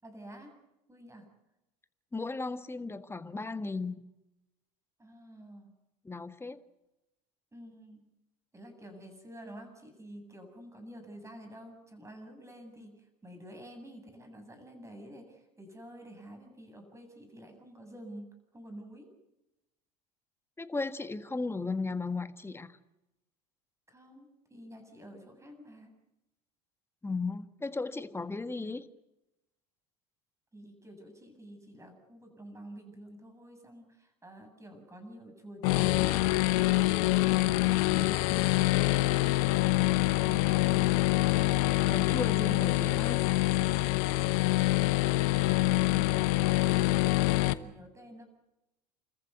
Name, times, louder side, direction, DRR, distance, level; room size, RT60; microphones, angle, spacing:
voice 1, 0.0-0.5 0.9-1.3 5.0-5.7 7.5-8.1 8.5-19.1 23.9-25.9 30.5-41.1 44.7-45.2 45.8-46.5 47.1-48.3, right 1 dB, 15° right, 6 dB, 7.7 m, -50 dB
voice 2, 2.1-4.0 6.0-6.6 20.6-22.8 27.0-28.8 41.9-43.2, left 3 dB, 10° left, 11 dB, 1.5 m, -35 dB
sound 1, 35.6-47.5, left 19 dB, 65° left, 1.1 m, -25 dB
30.0 x 14.5 x 8.2 m, 0.94 s
hypercardioid pair, 85°, 21 cm